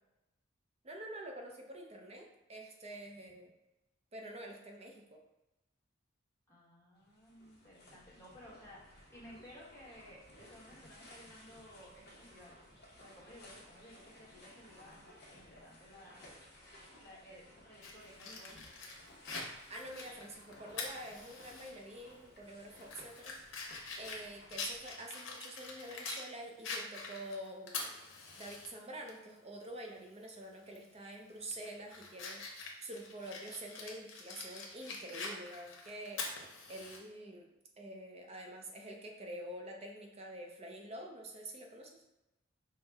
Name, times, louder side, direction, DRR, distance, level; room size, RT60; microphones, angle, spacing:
voice 1, 0.8-3.5 4.1-5.2 19.7-23.6 24.0-28.0 28.4-37.5 37.8-42.0, right 1 dB, 30° right, 2 dB, 0.6 m, -47 dB
voice 2, 6.5-8.8 9.1-12.5 13.0-16.2 17.0-18.6, equal, 15° left, -7 dB, 1.2 m, -56 dB
sound 1, 7.0-24.9, left 1 dB, 55° left, 0.9 m, -57 dB
Fire, 17.8-21.7 22.1-22.2 22.7-26.3 26.6-28.7 29.1-29.2 30.7-30.9 31.4-37.0, left 4 dB, 85° left, 0.8 m, -45 dB
5.4 x 2.1 x 3.4 m, 0.95 s
head